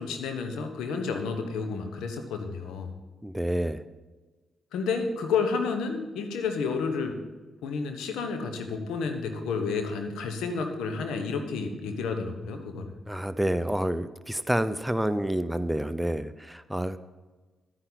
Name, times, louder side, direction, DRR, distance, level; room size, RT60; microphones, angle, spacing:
voice 1, 0.0-2.9 4.7-7.2 7.6-12.9, left 5 dB, 75° left, 5 dB, 1.2 m, -30 dB
voice 2, 3.2-3.8 13.1-17.0, right 1 dB, 5° right, 13 dB, 0.6 m, -28 dB
11.5 x 9.7 x 4.1 m, 1.3 s
hypercardioid pair, 40°, 0 cm